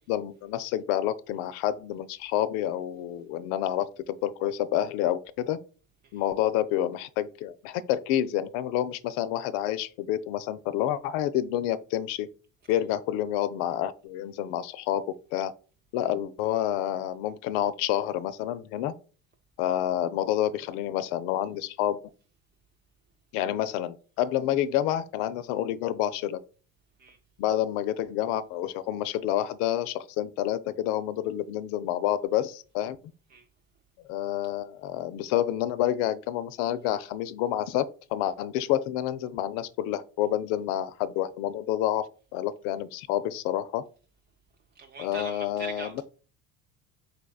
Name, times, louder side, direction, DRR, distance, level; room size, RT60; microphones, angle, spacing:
voice 1, 0.1-5.6 6.1-12.3 12.7-15.1 15.3-15.5 15.9-18.9 19.6-22.0 23.3-26.4 27.4-33.0 34.1-42.1 42.3-43.8 45.0-46.0, left 12 dB, 70° left, 0.5 m, -28 dB
voice 2, 44.8-46.0, right 3 dB, 25° right, 0.4 m, -42 dB
4.3 x 3.4 x 2.3 m
hypercardioid pair, 70°, 41 cm